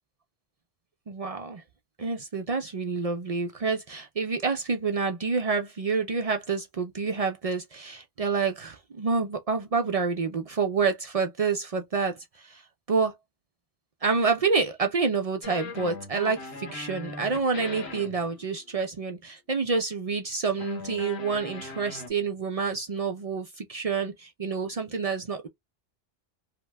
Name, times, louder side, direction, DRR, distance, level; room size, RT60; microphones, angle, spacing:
voice 1, 1.1-1.6 2.0-12.6 12.9-13.1 14.0-25.5, right 4 dB, 50° right, 0.4 m, -28 dB
sound 1, 15.4-18.8 20.5-22.1, left 3 dB, 85° left, 1.3 m, -40 dB
2.8 x 2.1 x 3.2 m
omnidirectional pair, 1.0 m